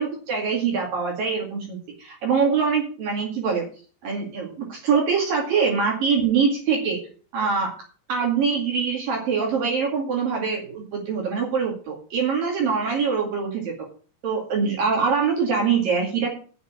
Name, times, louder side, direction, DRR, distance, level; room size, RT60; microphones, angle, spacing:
voice 1, 0.0-3.6 4.0-7.0 7.3-7.7 8.1-13.7 14.2-16.3, right 5 dB, 50° right, 0 dB, 3.3 m, -24 dB
8.1 x 6.6 x 8.3 m, 0.42 s
omnidirectional pair, 5.9 m